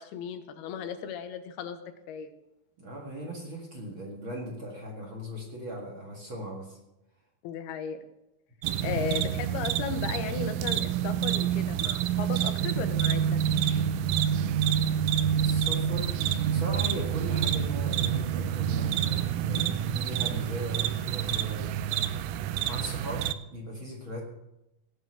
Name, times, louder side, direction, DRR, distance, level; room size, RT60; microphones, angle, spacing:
voice 1, 0.0-1.8 2.1-2.3 7.4-8.0 8.8-13.4, left 7 dB, 90° left, 9 dB, 3.0 m, -35 dB
voice 2, 2.8-6.8 8.8-9.1 15.3-21.8 22.6-24.2, equal, 40° right, -1 dB, 2.0 m, -38 dB
sound 1, 8.6-23.3, right 9 dB, 85° right, 1.9 m, -28 dB
18.0 x 7.2 x 6.2 m, 0.90 s
omnidirectional pair, 4.5 m